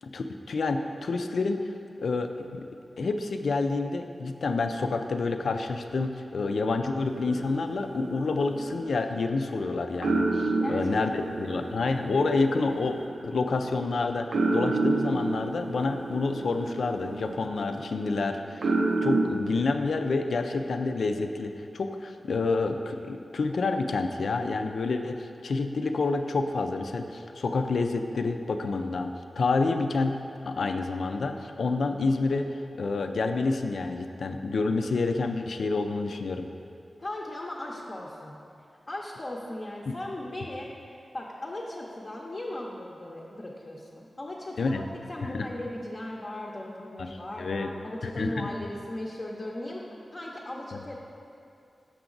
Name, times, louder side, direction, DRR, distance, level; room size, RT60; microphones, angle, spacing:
voice 1, 0.0-1.7 2.0-2.7 3.0-18.7 19.0-30.2 30.5-36.5 39.9-40.0 44.6-44.8 45.3-45.5 47.0-47.1 47.4-47.7 48.0-48.5, left 3 dB, 80° left, 6 dB, 0.4 m, -28 dB
sound 1, 7.1-9.6 10.0-19.2, right 2 dB, 80° right, 0.6 m, -30 dB
voice 2, 10.5-11.7 37.0-38.4 38.9-44.8 45.1-49.9 50.1-51.0, left 1 dB, 30° left, -3 dB, 0.6 m, -38 dB
6.7 x 5.9 x 3.9 m, 2.5 s
wide cardioid pair, 110°, 0 cm